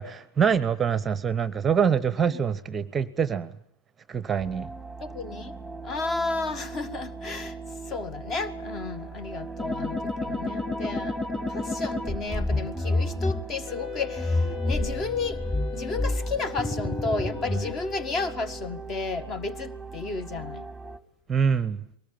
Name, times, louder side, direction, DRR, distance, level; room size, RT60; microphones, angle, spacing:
voice 1, 0.0-3.5 4.1-4.7 21.3-21.8, right 7 dB, 20° right, 0.9 m, -25 dB
sound 1, 4.4-21.0, right 4 dB, ahead, 1.5 m, -40 dB
voice 2, 5.0-5.5 5.8-7.6 7.9-15.4 15.7-20.7, left 3 dB, 30° left, 1.6 m, -32 dB
sound 2, 9.6-13.3 14.2-17.7, left 2 dB, 15° left, 3.3 m, -29 dB
Wind instrument woodwind instrument, 13.7-18.9, left 8 dB, 60° left, 3.4 m, -39 dB
22.5 x 19.0 x 8.9 m
figure-of-eight pair, 90°, 0 cm